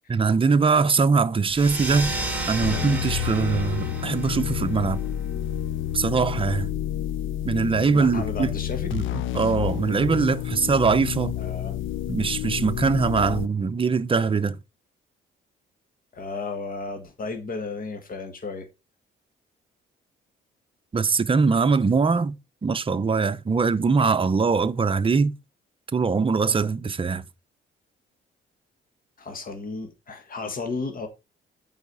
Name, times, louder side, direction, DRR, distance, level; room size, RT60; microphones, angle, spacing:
voice 1, 0.1-2.1 2.5-5.0 5.9-6.7 7.4-8.5 8.9-9.0 9.3-11.3 12.1-14.6 20.9-22.3 22.6-25.3 25.9-27.2, right 4 dB, 25° right, 0.7 m, -22 dB
sound 1, 1.5-6.6, right 2 dB, 5° right, 2.3 m, -33 dB
sound 2, 2.6-13.5, left 12 dB, 80° left, 0.6 m, -29 dB
voice 2, 7.9-8.9 11.4-11.8 16.1-18.7 29.2-31.1, left 3 dB, 45° left, 1.8 m, -33 dB
8.2 x 5.0 x 4.7 m
cardioid pair, 90°, 20 cm